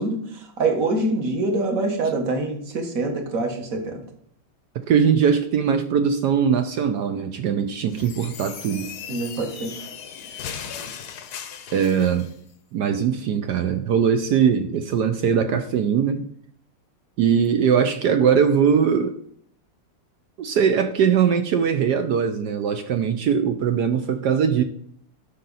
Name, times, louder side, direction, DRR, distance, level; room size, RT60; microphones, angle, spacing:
voice 1, 0.0-4.0 9.1-9.8, right 2 dB, 40° right, 4 dB, 1.7 m, -25 dB
voice 2, 4.7-8.9 11.7-12.3 12.7-16.3 17.2-19.2 20.4-24.6, right 7 dB, 70° right, 8 dB, 1.0 m, -21 dB
sound 1, 7.9-12.3, left 7 dB, 60° left, 1.1 m, -37 dB
12.0 x 5.9 x 4.0 m, 0.65 s
omnidirectional pair, 2.4 m